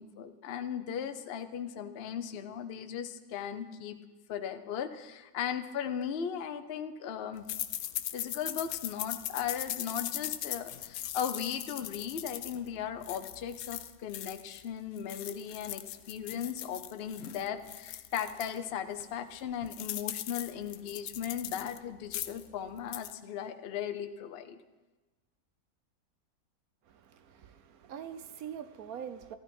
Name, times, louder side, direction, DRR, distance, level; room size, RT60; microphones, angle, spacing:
voice 1, 0.0-4.0 4.3-7.5 8.1-24.6, left 8 dB, 50° left, 9 dB, 0.8 m, -37 dB
sound 1, 7.5-14.6 15.0-18.6 19.0-19.1 19.3-21.8 22.0-22.5 22.8-23.1, left 12 dB, 75° left, 1.0 m, -39 dB
voice 2, 26.9-29.4, right 8 dB, 70° right, 11 dB, 1.3 m, -44 dB
13.5 x 13.0 x 5.4 m, 1.2 s
omnidirectional pair, 1.6 m